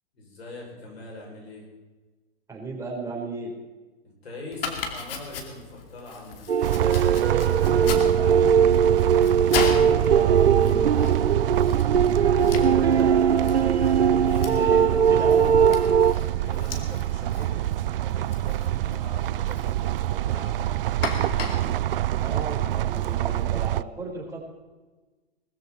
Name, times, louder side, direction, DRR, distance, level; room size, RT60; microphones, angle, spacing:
voice 1, 0.1-1.7 4.0-6.4 14.1-14.8 16.2-20.7 21.3-21.7, left 2 dB, 80° left, -1 dB, 6.7 m, -42 dB
voice 2, 2.5-3.5 7.7-11.3 12.1-15.9 22.1-24.4, right 3 dB, 10° right, -3 dB, 4.3 m, -36 dB
Domestic sounds home sounds, 4.5-23.0, left 5 dB, 65° left, 2.7 m, -37 dB
sound 1, 6.5-16.1, right 7 dB, 90° right, 0.8 m, -20 dB
sound 2, 6.6-23.8, right 13 dB, 65° right, 0.5 m, -26 dB
19.5 x 14.0 x 4.3 m, 1.3 s
hypercardioid pair, 110°, 31 cm